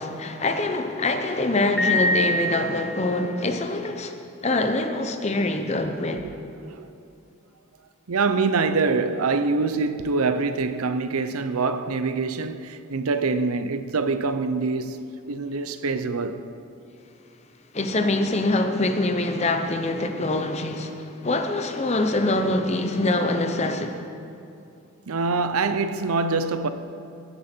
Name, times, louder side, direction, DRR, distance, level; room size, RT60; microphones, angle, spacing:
voice 1, 0.0-4.2 4.4-6.3 17.7-24.0, left 2 dB, 30° left, 0.8 m, -24 dB
Piano, 1.8-3.2, left 1 dB, ahead, 1.4 m, -24 dB
voice 2, 5.8-6.2 6.6-6.9 8.1-16.4 25.1-26.7, right 4 dB, 85° right, 0.7 m, -25 dB
17.0 x 10.0 x 4.5 m
head